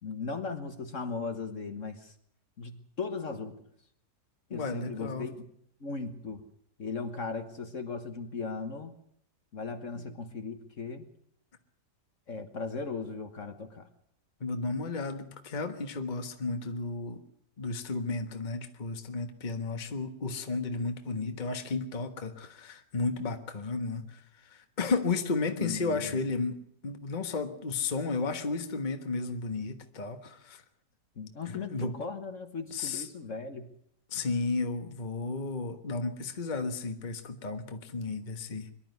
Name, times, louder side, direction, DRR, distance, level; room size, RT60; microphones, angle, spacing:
voice 1, 0.0-2.1 2.6-3.6 4.5-5.5 5.8-6.4 6.8-9.0 9.5-11.1 12.3-13.9 25.6-26.2 31.2-33.7, left 4 dB, 50° left, 8 dB, 1.7 m, -37 dB
voice 2, 4.5-5.3 10.0-10.1 14.4-17.2 17.6-26.6 26.8-30.6 31.4-31.9 32.7-33.1 34.1-38.7, left 3 dB, 30° left, 7 dB, 1.4 m, -33 dB
23.5 x 12.0 x 9.3 m, 0.70 s
omnidirectional pair, 1.8 m